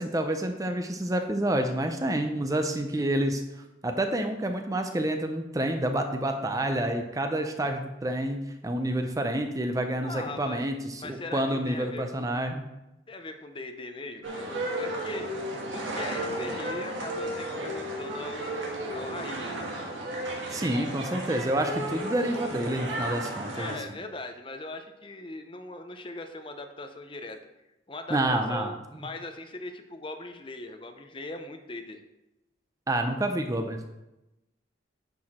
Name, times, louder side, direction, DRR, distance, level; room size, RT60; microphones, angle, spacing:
voice 1, 0.0-3.4 3.8-12.7 20.5-23.7 28.1-28.7 32.9-33.9, right 1 dB, 20° right, 6 dB, 0.5 m, -28 dB
voice 2, 10.0-10.6 11.0-12.4 13.1-15.3 15.7-19.7 23.5-27.4 27.9-32.0, left 2 dB, 25° left, 6 dB, 0.6 m, -40 dB
sound 1, 14.2-23.8, right 1 dB, 80° right, 1.5 m, -34 dB
9.8 x 4.8 x 4.3 m, 0.96 s
head